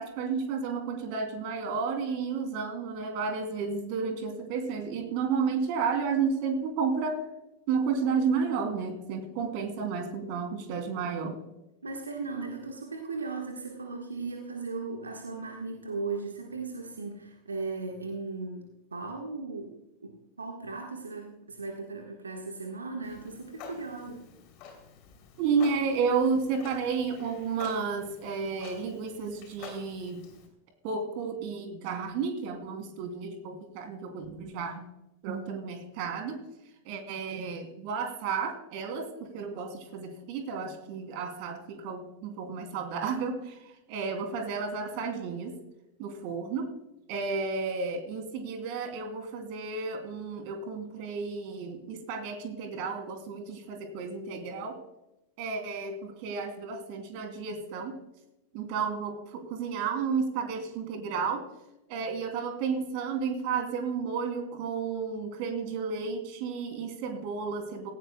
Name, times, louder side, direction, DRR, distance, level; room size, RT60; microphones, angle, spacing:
voice 1, 0.0-7.2 7.7-11.4 25.4-30.2 30.8-34.9 35.2-36.4 36.8-43.6 43.9-45.5 46.0-46.8 47.1-54.8 55.4-57.9 58.5-61.4 61.9-67.9, right 5 dB, 45° right, 5 dB, 2.9 m, -32 dB
voice 2, 11.8-18.6 18.9-19.7 20.0-24.2, right 3 dB, 75° right, 2 dB, 1.5 m, -37 dB
Clock, 23.0-30.5, left 5 dB, 40° left, 3.2 m, -49 dB
17.5 x 16.0 x 2.3 m, 0.89 s
figure-of-eight pair, 90°, 0 cm